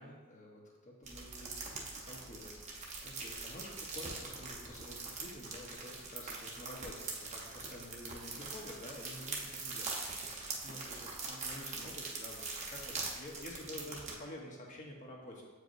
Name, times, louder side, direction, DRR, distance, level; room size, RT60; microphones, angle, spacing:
voice 1, 0.0-10.1 10.6-15.5, left 1 dB, 35° left, -1 dB, 1.0 m, -49 dB
sound 1, 1.0-14.1, right 3 dB, 35° right, 0.9 m, -43 dB
7.9 x 4.6 x 2.6 m, 1.3 s
head